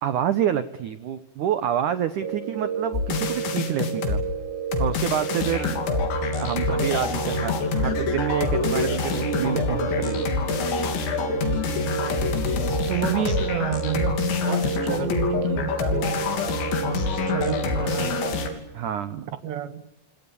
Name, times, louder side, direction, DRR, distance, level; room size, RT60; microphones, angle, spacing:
voice 1, 0.0-4.2 4.8-5.8 6.4-10.6 18.7-19.3, right 10 dB, 85° right, 12 dB, 1.7 m, -28 dB
sound 1, 2.2-18.5, right 7 dB, 45° right, 2.5 m, -31 dB
sound 2, 2.9-4.2 4.7-18.5, left 5 dB, 80° left, 5.5 m, -26 dB
voice 2, 12.9-18.2 19.2-19.8, right 10 dB, 70° right, 11 dB, 3.9 m, -31 dB
27.5 x 26.0 x 7.1 m, 0.96 s
omnidirectional pair, 5.2 m